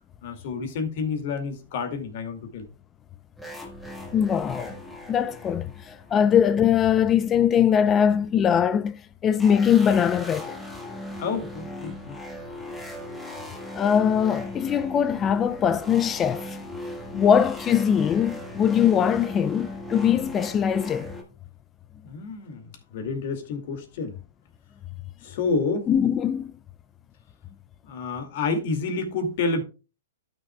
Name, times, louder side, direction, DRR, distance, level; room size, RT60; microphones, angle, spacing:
voice 1, 0.2-2.7 11.2-12.2 22.0-24.1 25.2-25.9 27.8-29.6, left 4 dB, 55° left, 2.3 m, -29 dB
sound 1, 3.4-6.6 9.4-21.2, left 1 dB, 5° left, 1.6 m, -38 dB
voice 2, 4.1-4.7 5.1-10.6 13.7-16.6 17.1-21.1 25.9-26.5, left 8 dB, 20° left, 0.4 m, -21 dB
12.5 x 6.4 x 2.3 m
hypercardioid pair, 130°, 0 cm